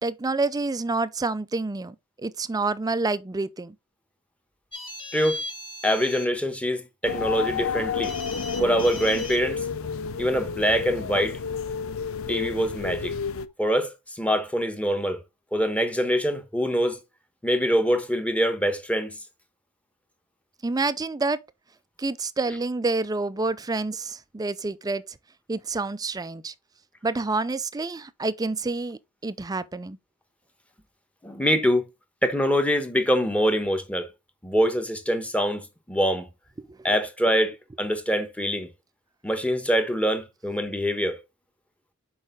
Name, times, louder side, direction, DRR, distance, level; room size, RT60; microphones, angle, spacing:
voice 1, 0.0-3.8 20.6-21.4 22.0-25.0 25.5-26.5 27.0-30.0 36.6-36.8, right 3 dB, 15° right, 0.4 m, -28 dB
sound 1, 4.7-6.3 8.0-9.4, left 2 dB, 25° left, 1.8 m, -37 dB
voice 2, 5.8-8.2 8.6-9.6 10.2-11.4 12.3-13.1 13.6-15.2 15.5-17.0 17.4-19.1 31.2-31.8 32.2-34.1 34.4-36.3 36.8-38.7 39.2-41.2, equal, 5° left, 1.0 m, -24 dB
sound 2, 7.0-13.5, left 6 dB, 65° left, 0.6 m, -31 dB
6.4 x 4.9 x 3.7 m
head